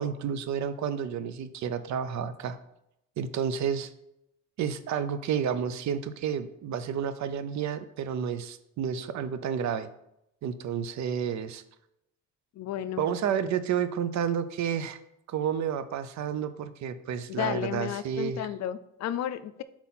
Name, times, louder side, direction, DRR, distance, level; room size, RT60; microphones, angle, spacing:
voice 1, 0.0-2.6 3.2-3.9 4.6-9.9 10.4-11.6 13.0-15.0 15.3-18.4, right 8 dB, 65° right, 12 dB, 0.6 m, -30 dB
voice 2, 12.5-13.1 17.3-19.6, left 11 dB, 60° left, 14 dB, 0.4 m, -33 dB
4.4 x 4.2 x 5.6 m, 0.82 s
cardioid pair, 90°, 30 cm